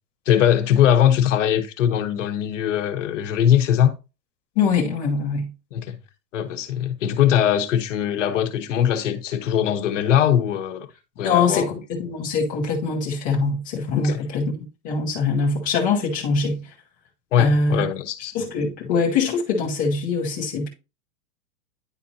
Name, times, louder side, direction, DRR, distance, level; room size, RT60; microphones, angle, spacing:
voice 1, 0.3-3.9 5.7-6.0 6.3-10.9 11.2-11.7 14.0-14.2 17.3-18.3, left 10 dB, 45° left, 1.0 m, -21 dB
voice 2, 4.6-5.5 11.2-16.7 17.4-17.9 18.3-20.7, left 4 dB, 15° left, 0.7 m, -23 dB
9.9 x 4.1 x 2.7 m
supercardioid pair, 180°, 50 cm